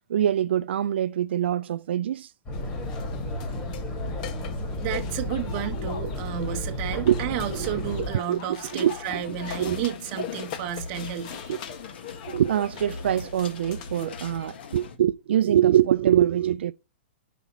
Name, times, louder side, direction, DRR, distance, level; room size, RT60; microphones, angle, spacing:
voice 1, 0.1-2.3 7.0-7.7 8.3-8.4 8.7-8.9 9.3-9.8 11.5-11.6 12.3-16.7, right 11 dB, 75° right, 0.3 m, -24 dB
sound 1, 2.5-14.1, left 8 dB, 45° left, 1.0 m, -40 dB
sound 2, 2.5-8.1, left 1 dB, 20° left, 1.7 m, -32 dB
voice 2, 4.8-11.5, right 10 dB, 35° right, 1.0 m, -32 dB
sound 3, 8.6-15.0, left 3 dB, 65° left, 1.4 m, -41 dB
5.6 x 5.1 x 4.5 m
hypercardioid pair, 160°, 6 cm